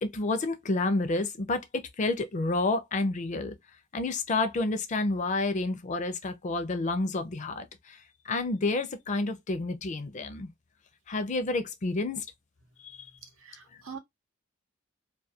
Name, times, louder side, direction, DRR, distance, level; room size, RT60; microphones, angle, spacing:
voice 1, 0.0-3.6 3.9-8.0 8.3-10.5 11.1-12.2 12.8-13.1, left 2 dB, 35° left, 0.4 m, -29 dB
voice 2, 13.2-14.0, right 6 dB, 85° right, 0.7 m, -44 dB
2.3 x 2.2 x 2.7 m
head